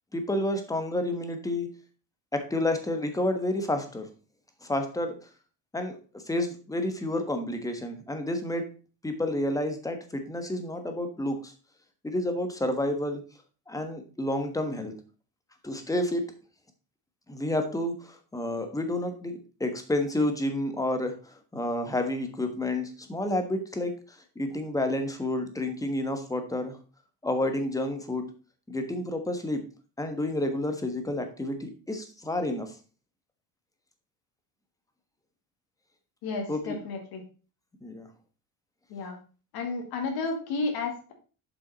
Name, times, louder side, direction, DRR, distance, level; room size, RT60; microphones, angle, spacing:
voice 1, 0.1-1.7 2.3-4.1 4.6-5.2 5.7-6.0 6.3-8.7 9.0-11.5 12.0-13.2 13.7-14.9 15.6-16.2 17.3-19.3 19.6-23.9 24.3-26.8 27.2-28.3 28.7-29.6 30.0-32.7 36.5-36.8 37.8-38.1, left 1 dB, 10° left, 6 dB, 1.3 m, -30 dB
voice 2, 36.2-37.2 38.9-39.2 39.5-41.1, left 3 dB, 70° left, 3 dB, 2.2 m, -32 dB
7.7 x 5.5 x 4.1 m, 0.36 s
cardioid pair, 135°, 39 cm